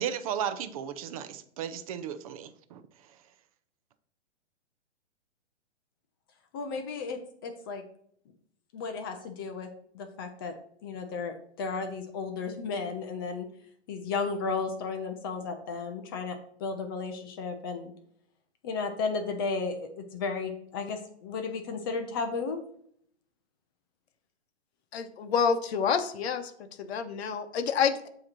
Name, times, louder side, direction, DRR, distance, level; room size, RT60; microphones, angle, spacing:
voice 1, 0.0-2.8, right 9 dB, 30° right, 11 dB, 0.5 m, -35 dB
voice 2, 6.5-7.8 8.7-9.7 9.9-10.5 10.8-13.5 13.9-17.9 18.6-22.6, left 4 dB, 20° left, 6 dB, 0.4 m, -34 dB
voice 3, 24.9-26.5 26.8-28.1, left 6 dB, 60° left, 8 dB, 0.9 m, -28 dB
7.6 x 2.9 x 5.9 m, 0.65 s
hypercardioid pair, 140°, 35 cm